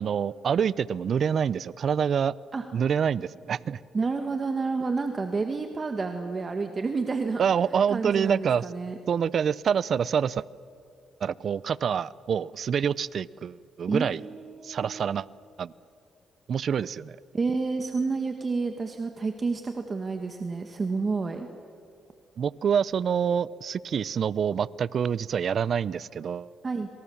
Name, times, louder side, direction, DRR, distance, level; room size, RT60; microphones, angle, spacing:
voice 1, 0.0-2.3 2.7-3.8 7.4-8.6 9.1-10.4 11.2-14.2 14.6-15.3 15.6-15.7 16.5-17.2 22.4-26.5, right 7 dB, 55° right, 20 dB, 0.5 m, -26 dB
voice 2, 3.9-7.4 7.9-9.0 13.9-15.0 17.3-21.5 26.6-26.9, right 4 dB, 35° right, 5 dB, 1.7 m, -29 dB
27.0 x 25.0 x 7.2 m, 2.4 s
cardioid pair, 90°, 0 cm